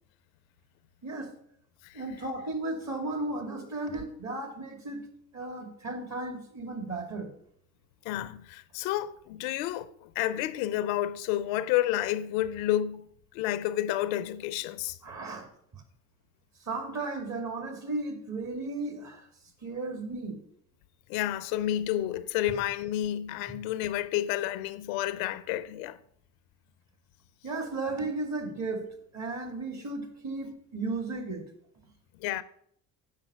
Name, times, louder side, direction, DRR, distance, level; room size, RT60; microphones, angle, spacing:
voice 1, 1.9-5.0 5.3-7.3 15.0-15.5 15.7-15.8 16.6-19.3 19.6-20.4 27.4-28.8 29.1-31.5, right 2 dB, 45° right, 2.4 m, -35 dB
voice 2, 8.0-13.1 13.3-15.0 21.1-26.0 32.2-32.4, left 13 dB, 90° left, 0.6 m, -30 dB
7.3 x 5.7 x 6.7 m
supercardioid pair, 75°, 39 cm